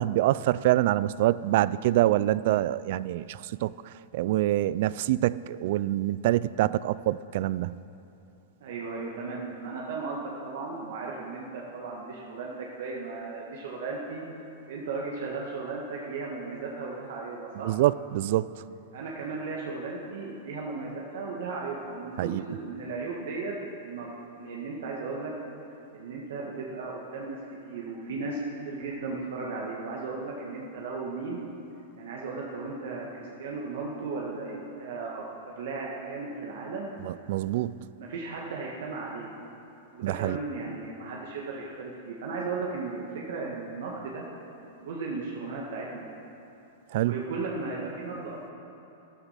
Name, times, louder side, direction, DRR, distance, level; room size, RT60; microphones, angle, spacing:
voice 1, 0.0-7.8 17.6-18.5 22.2-22.4 37.1-37.8 40.0-40.4 46.9-47.2, right 15 dB, 55° right, 18 dB, 0.3 m, -26 dB
voice 2, 8.6-14.3 14.7-17.8 18.9-23.5 23.8-24.1 24.4-25.3 25.9-27.4 27.7-31.4 32.0-36.9 37.9-39.3 39.9-44.2 44.8-46.0 47.0-48.5, right 3 dB, 75° right, -2 dB, 1.7 m, -36 dB
13.5 x 11.5 x 5.7 m, 2.9 s
supercardioid pair, 145°, 0 cm